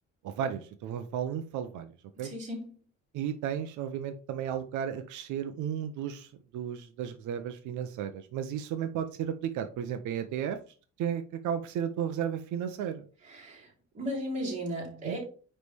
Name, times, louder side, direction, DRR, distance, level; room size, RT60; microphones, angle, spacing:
voice 1, 0.2-1.9 2.2-2.3 3.1-10.6 11.0-13.0 15.0-15.2, right 9 dB, 85° right, 0.7 m, -34 dB
voice 2, 2.2-2.6 13.3-15.2, equal, 25° right, 3.3 m, -36 dB
9.4 x 3.3 x 3.4 m
cardioid pair, 180°, 29 cm